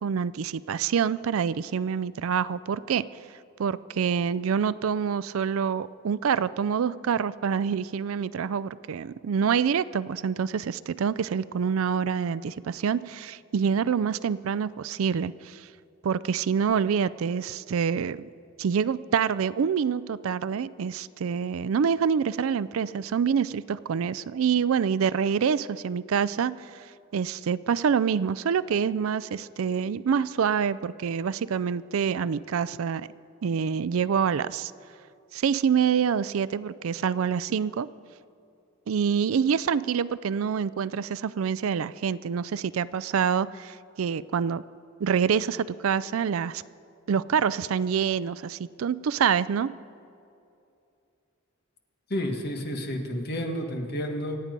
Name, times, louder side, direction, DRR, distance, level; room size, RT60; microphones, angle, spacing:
voice 1, 0.0-3.1 3.6-15.7 16.0-18.3 18.6-26.8 27.1-33.1 33.4-34.7 35.3-37.9 38.9-44.6 45.0-46.6 47.1-49.7, right 7 dB, 75° right, 18 dB, 0.4 m, -26 dB
voice 2, 52.1-54.4, equal, 50° left, 3 dB, 1.6 m, -30 dB
26.5 x 8.8 x 5.3 m, 2.6 s
head